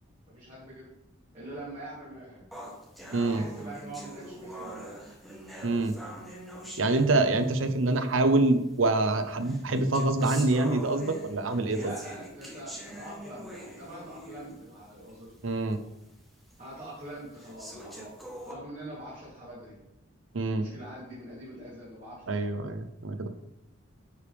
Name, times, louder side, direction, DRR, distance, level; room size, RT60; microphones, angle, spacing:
voice 1, 0.3-0.9 1.3-2.5 3.1-5.1 11.7-15.5 16.6-18.2 18.4-19.8 20.5-22.8, right 1 dB, 35° right, -9 dB, 2.9 m, -44 dB
sound 1, 2.5-7.6 8.5-8.6 9.4-14.7 15.1-15.2 15.7-15.8 16.5-16.6 17.3-18.5, right 1 dB, ahead, 1.2 m, -43 dB
voice 2, 3.1-3.4 5.6-6.0 6.8-11.9 15.4-15.8 20.3-20.7 22.3-23.3, right 2 dB, 80° right, 9 dB, 0.7 m, -25 dB
9.6 x 4.9 x 3.4 m, 0.88 s
head